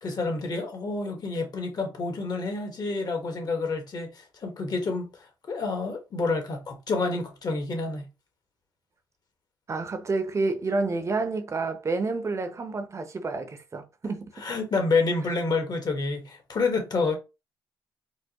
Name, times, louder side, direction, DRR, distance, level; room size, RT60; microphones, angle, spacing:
voice 1, 0.0-8.0 14.4-17.2, left 3 dB, 50° left, 1.3 m, -28 dB
voice 2, 9.7-14.3, right 3 dB, 35° right, 0.8 m, -29 dB
4.5 x 2.0 x 3.0 m
cardioid pair, 70°, 9 cm